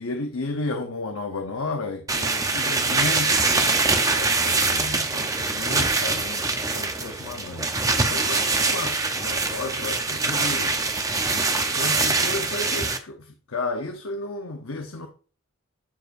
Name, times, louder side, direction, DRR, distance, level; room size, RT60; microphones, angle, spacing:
voice 1, 0.0-7.7 8.1-10.8 11.3-15.1, left 2 dB, 85° left, 0.9 m, -33 dB
sound 1, 2.1-13.0, right 3 dB, 15° right, 0.8 m, -24 dB
11.0 x 5.1 x 2.6 m
head